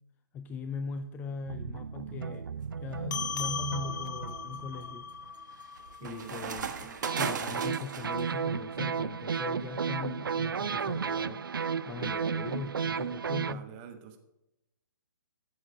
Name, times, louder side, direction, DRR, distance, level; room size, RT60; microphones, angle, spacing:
voice 1, 0.3-2.5 2.8-5.1 6.0-13.7, left 5 dB, 15° left, 9 dB, 0.4 m, -40 dB
sound 1, 1.5-5.3 7.0-13.5, right 6 dB, 80° right, 0.4 m, -33 dB
sound 2, 2.7-3.0 3.6-8.2, right 6 dB, 60° right, 1.4 m, -38 dB
sound 3, 3.1-7.9, left 6 dB, 60° left, 0.5 m, -39 dB
voice 2, 6.0-6.3 6.6-7.7 13.4-14.2, right 8 dB, 30° right, 6 dB, 1.2 m, -47 dB
13.0 x 7.8 x 5.2 m, 0.92 s
figure-of-eight pair, 135°, 11 cm